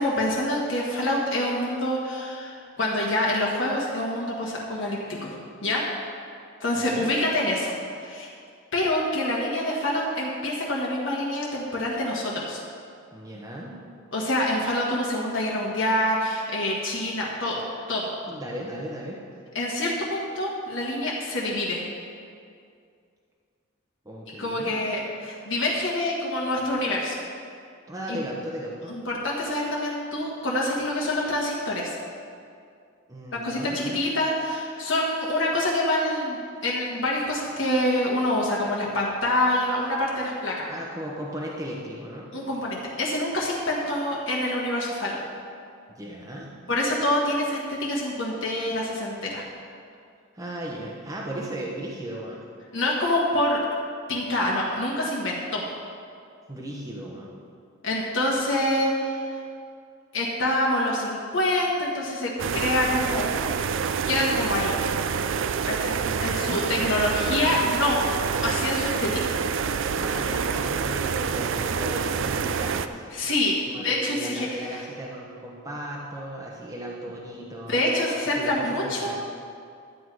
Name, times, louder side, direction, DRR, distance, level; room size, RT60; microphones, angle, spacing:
voice 1, 0.0-5.3 5.6-5.8 6.6-8.3 8.7-12.6 14.1-17.6 17.9-18.2 19.5-21.9 24.4-27.2 28.1-28.2 28.9-32.0 33.4-40.7 42.3-45.2 46.7-49.4 52.7-53.6 54.1-55.7 57.8-59.4 60.1-63.3 64.1-64.7 65.7-69.2 73.1-74.5 77.7-79.1, left 1 dB, 65° left, -3 dB, 1.4 m, -26 dB
voice 2, 6.7-7.1 13.1-13.9 18.3-19.2 24.0-24.8 27.9-29.0 33.1-34.0 40.7-42.3 45.9-46.6 50.3-52.4 56.5-57.3 66.0-66.6 69.9-73.1 73.7-77.8 78.4-79.1, right 1 dB, 15° right, -3 dB, 1.0 m, -36 dB
sound 1, 62.4-72.9, right 6 dB, 60° right, 0.4 m, -27 dB
11.5 x 8.0 x 4.7 m, 2.3 s
head